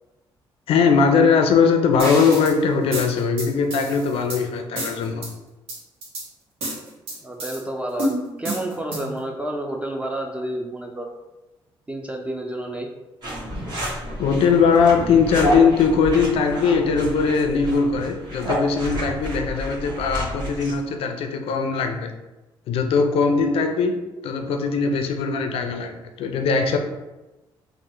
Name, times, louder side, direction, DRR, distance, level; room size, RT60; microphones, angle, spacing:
voice 1, 0.7-5.3 14.2-22.1 22.7-26.8, left 5 dB, 75° left, 5 dB, 0.4 m, -20 dB
sound 1, 2.0-2.5 2.9-4.4 4.8-5.3 5.7-6.2 6.6-7.6 8.0-9.2, right 1 dB, 90° right, 0.8 m, -30 dB
voice 2, 7.2-8.1 8.4-11.1 11.9-12.9, right 1 dB, 15° right, 1 dB, 0.4 m, -30 dB
sound 2, 13.2-20.8, equal, 50° right, 1.3 m, -29 dB
3.3 x 2.1 x 3.0 m, 1.1 s
cardioid pair, 75°, 10 cm